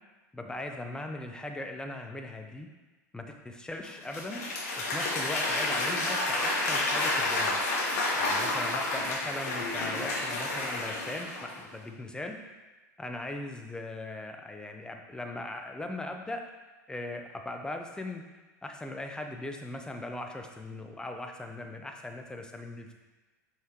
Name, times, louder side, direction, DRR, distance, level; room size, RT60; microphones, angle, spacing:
voice 1, 0.3-2.7 3.1-4.4 4.8-7.6 8.1-12.4 13.0-16.4 16.9-18.2 18.6-22.9, left 2 dB, 10° left, 4 dB, 0.7 m, -39 dB
Applause / Crowd, 3.8-11.6, left 2 dB, 65° left, 2.0 m, -30 dB
5.7 x 5.6 x 3.0 m, 1.2 s
hypercardioid pair, 90°, 9 cm